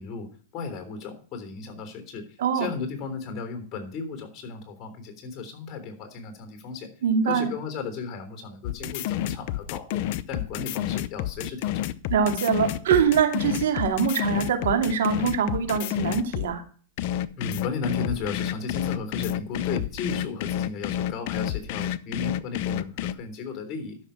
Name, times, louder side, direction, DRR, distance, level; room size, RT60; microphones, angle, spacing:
voice 1, 0.0-2.3 2.5-6.9 7.2-11.9 17.4-24.0, left 4 dB, 35° left, 7 dB, 3.5 m, -35 dB
voice 2, 7.0-7.5 12.1-16.6, right 7 dB, 75° right, 6 dB, 2.6 m, -23 dB
sound 1, 8.6-16.5 17.0-23.1, left 12 dB, 55° left, 0.7 m, -29 dB
12.5 x 6.5 x 5.8 m, 0.43 s
hypercardioid pair, 130°, 0 cm